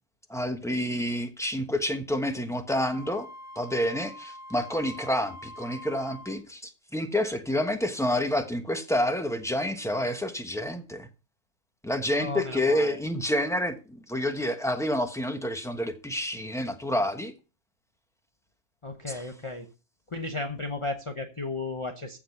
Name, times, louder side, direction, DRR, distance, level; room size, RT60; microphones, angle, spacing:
voice 1, 0.3-3.3 3.5-11.1 11.8-17.3 19.1-19.2, left 1 dB, ahead, 1.0 m, -28 dB
Wind instrument woodwind instrument, 2.7-6.4, left 1 dB, 50° right, 1.9 m, -45 dB
voice 2, 12.2-13.0 18.8-19.7 20.1-22.2, left 3 dB, 25° left, 1.0 m, -34 dB
14.5 x 5.0 x 5.8 m
omnidirectional pair, 1.4 m